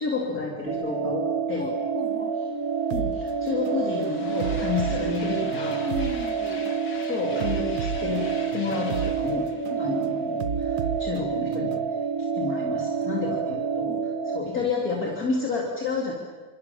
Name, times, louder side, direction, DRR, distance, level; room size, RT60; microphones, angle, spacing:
voice 1, 0.0-1.7 2.9-5.8 7.0-9.5 9.8-13.9 14.3-16.1, left 4 dB, 50° left, -1 dB, 3.8 m, -30 dB
sound 1, 0.7-14.4, right 6 dB, 55° right, 3.5 m, -28 dB
voice 2, 1.6-2.4 5.9-6.7 9.7-10.0 13.0-13.4 13.9-14.1, left 1 dB, 5° left, 3 dB, 3.5 m, -37 dB
sound 2, 2.2-2.3 2.6-11.2, left 4 dB, 70° left, 2.9 m, -44 dB
sound 3, 2.9-3.1 3.7-3.9 4.4-6.1 6.7-6.9 7.4-9.1 9.7-9.9 10.4-11.9, right 6 dB, 85° right, 1.9 m, -33 dB
30.0 x 27.0 x 7.2 m, 1.5 s
omnidirectional pair, 1.9 m